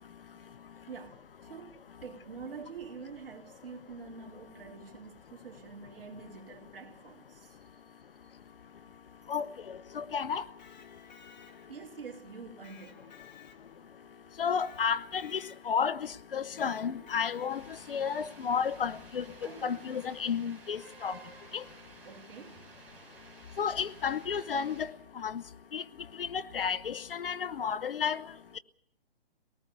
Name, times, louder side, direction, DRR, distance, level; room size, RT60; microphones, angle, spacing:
voice 1, 0.9-8.4 11.7-13.1 22.0-22.7, right 5 dB, 60° right, 3.9 m, -47 dB
voice 2, 9.3-10.4 14.4-19.2 19.6-21.2 21.5-21.6 23.6-25.4 25.7-25.8 26.2-28.3, left 7 dB, 60° left, 0.9 m, -32 dB
Electric guitar, 10.4-11.9 12.6-14.0 14.6-15.9 16.6-17.8, left 8 dB, 45° left, 2.4 m, -55 dB
sound 1, 17.5-24.8, right 3 dB, 5° right, 6.7 m, -53 dB
23.5 x 19.0 x 6.8 m
hypercardioid pair, 155°, 31 cm